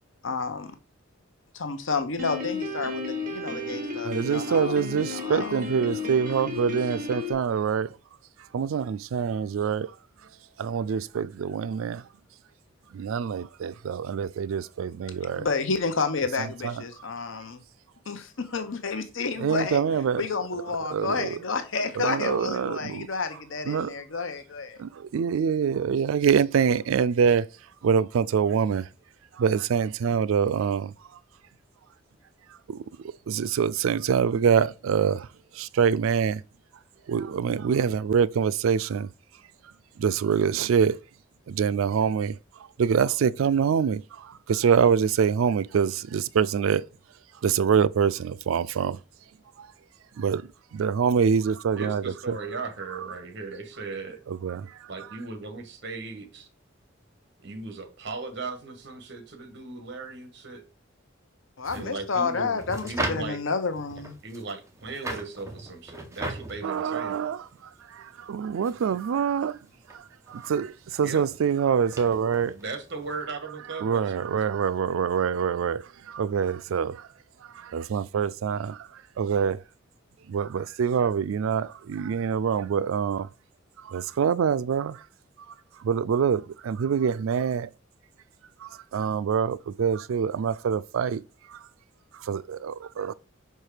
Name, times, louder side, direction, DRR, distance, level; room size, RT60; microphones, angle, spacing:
voice 1, 0.2-0.7 1.5-4.8 5.1-5.6 15.4-17.6 18.1-19.8 20.2-24.8 61.6-64.2, left 4 dB, 75° left, 0.8 m, -30 dB
Piano, 2.2-7.3, left 3 dB, 45° right, 1.6 m, -33 dB
voice 2, 4.0-8.0 8.5-10.0 10.6-12.1 12.9-15.5 16.4-16.8 19.4-20.3 20.5-20.6 20.9-21.4 22.0-23.1 23.7-23.9 24.8-28.9 29.3-31.2 32.5-36.4 37.1-39.1 39.6-41.0 41.5-46.8 47.4-49.0 49.6-49.7 50.1-52.4 54.3-54.9 66.6-69.6 69.9-72.6 73.8-77.1 77.4-79.6 80.3-83.3 83.8-85.1 85.5-87.7 88.6-91.7 92.1-93.1, right 7 dB, 90° right, 0.4 m, -25 dB
voice 3, 51.8-54.2 54.9-56.5 57.4-60.6 61.7-63.4 64.2-67.2 71.0-71.2 72.6-74.3, right 3 dB, 60° right, 1.3 m, -37 dB
sound 1, 61.6-73.2, right 2 dB, 15° right, 1.1 m, -39 dB
5.6 x 4.6 x 5.0 m
head